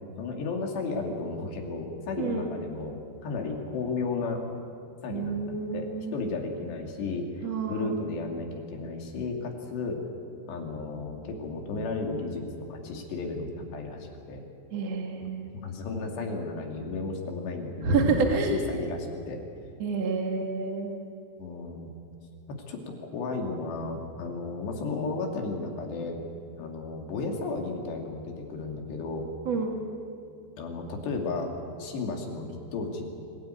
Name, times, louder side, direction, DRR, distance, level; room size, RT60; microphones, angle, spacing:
voice 1, 0.2-4.4 5.0-10.0 10.5-14.5 15.6-19.4 21.4-21.9 22.7-26.2 26.5-29.3 30.6-31.5 31.8-33.1, left 3 dB, 80° left, 2 dB, 4.8 m, -34 dB
voice 2, 2.2-2.5 5.1-6.1 7.4-7.9 14.7-15.5 17.8-18.6 19.8-20.9 29.5-29.8, right 4 dB, 45° right, 1 dB, 2.7 m, -28 dB
26.5 x 18.0 x 9.3 m, 2.5 s
omnidirectional pair, 4.9 m